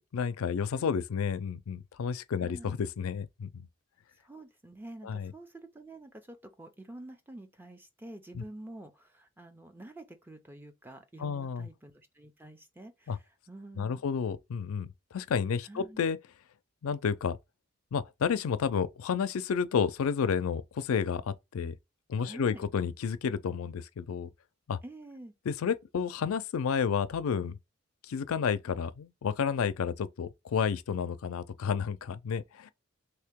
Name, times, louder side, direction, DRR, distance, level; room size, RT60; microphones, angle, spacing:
voice 1, 0.1-3.7 5.0-5.3 8.3-8.4 11.2-11.7 13.1-13.2 13.8-16.2 16.8-17.4 17.9-21.7 22.1-24.3 24.7-24.8 25.5-27.6 28.0-32.7, left 6 dB, 75° left, 0.4 m, -31 dB
voice 2, 2.4-2.7 4.2-14.0 15.6-16.0 22.2-22.6 24.8-25.3, right 1 dB, 10° right, 0.5 m, -48 dB
3.2 x 2.8 x 3.5 m
head